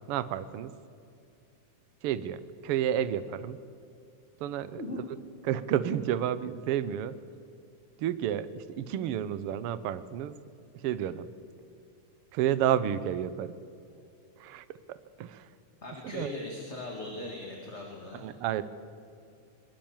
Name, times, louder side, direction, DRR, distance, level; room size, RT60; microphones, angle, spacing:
voice 1, 0.1-0.7 2.0-3.6 4.4-4.8 5.4-7.2 8.0-10.4 10.7-11.3 12.3-13.6 14.4-15.5 16.0-16.3 18.2-18.6, right 10 dB, 70° right, 15 dB, 1.4 m, -31 dB
voice 2, 15.8-18.3, left 2 dB, 25° left, 0 dB, 2.2 m, -39 dB
23.5 x 21.0 x 7.3 m, 2.5 s
omnidirectional pair, 3.6 m